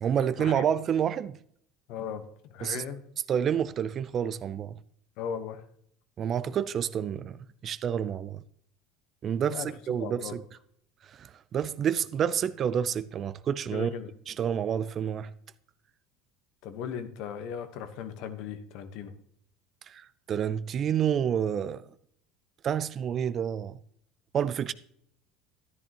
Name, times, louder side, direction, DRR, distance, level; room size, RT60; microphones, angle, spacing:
voice 1, 0.0-1.4 2.6-2.8 3.3-4.8 6.2-8.4 9.2-10.4 11.2-13.9 14.3-15.3 19.9-21.9 22.6-23.8 24.3-24.7, right 8 dB, 40° right, 0.5 m, -29 dB
voice 2, 1.9-3.0 5.2-5.6 9.5-9.7 10.0-10.4 13.7-14.1 16.6-19.1, left 7 dB, 65° left, 1.2 m, -37 dB
13.0 x 11.0 x 3.0 m
supercardioid pair, 95°, 0 cm